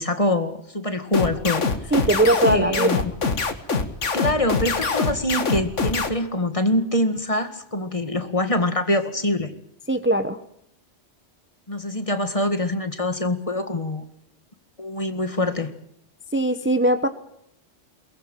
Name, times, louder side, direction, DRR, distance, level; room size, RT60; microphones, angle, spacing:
voice 1, 0.0-1.9 2.5-3.0 4.1-9.5 11.7-14.0 14.8-15.7, left 1 dB, 30° left, 8 dB, 2.0 m, -24 dB
sound 1, 1.1-6.1, left 4 dB, 80° left, 2.1 m, -23 dB
voice 2, 1.9-3.0 9.9-10.4 16.3-17.1, right 1 dB, 10° right, 9 dB, 1.0 m, -20 dB
22.5 x 20.0 x 9.1 m, 0.72 s
omnidirectional pair, 1.2 m